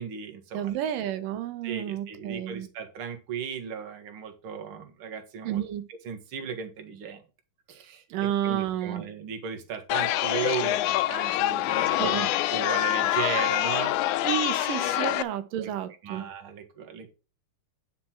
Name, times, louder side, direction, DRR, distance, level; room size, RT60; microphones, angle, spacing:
voice 1, 0.0-0.7 1.6-5.6 6.0-7.2 7.7-13.9 15.6-17.1, right 7 dB, 45° right, 2.2 m, -36 dB
voice 2, 0.5-2.7 5.4-5.9 8.1-9.0 12.0-12.3 14.2-16.2, right 11 dB, 90° right, 2.6 m, -31 dB
Chatter, 9.9-15.2, left 14 dB, 80° left, 1.9 m, -25 dB
9.5 x 6.0 x 4.5 m
omnidirectional pair, 3.8 m